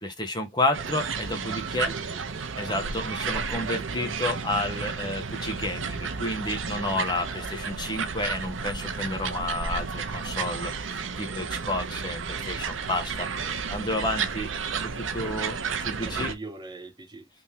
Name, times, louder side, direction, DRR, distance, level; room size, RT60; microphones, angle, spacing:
voice 1, 0.0-1.9 2.5-14.5 14.8-16.3, left 2 dB, 20° left, 1.0 m, -31 dB
sound 1, 0.7-16.3, right 5 dB, 70° right, 0.7 m, -32 dB
voice 2, 1.5-2.9 7.2-7.8 15.2-15.8 16.0-17.3, right 2 dB, 20° right, 0.6 m, -44 dB
3.6 x 3.1 x 2.8 m
head